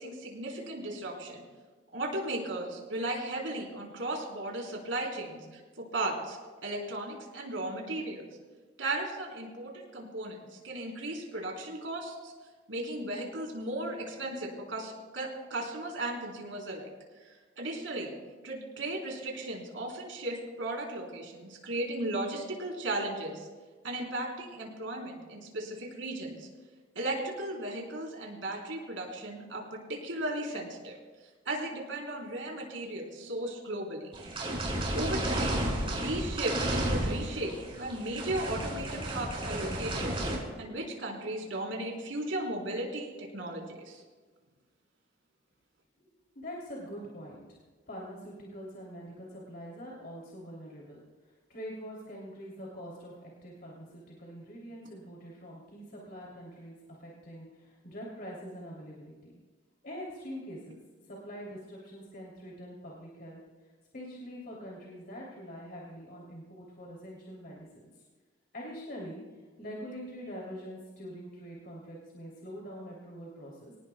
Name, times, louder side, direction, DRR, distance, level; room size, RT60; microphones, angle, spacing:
voice 1, 0.0-1.4 1.9-8.3 8.8-10.4 10.6-12.3 12.7-16.9 17.2-17.3 17.6-18.1 18.4-23.5 23.8-26.5 26.9-31.0 31.4-34.1 34.9-35.6 35.9-44.0, right 1 dB, 85° right, -1 dB, 4.1 m, -36 dB
sound 1, 34.1-40.4, right 1 dB, 30° right, 4.4 m, -32 dB
voice 2, 46.3-47.6 47.9-51.0 51.5-59.3 59.8-60.8 61.1-63.4 63.9-67.9 68.5-69.2 69.6-73.7, equal, 55° left, -4 dB, 3.2 m, -44 dB
25.5 x 18.5 x 2.3 m, 1.3 s
head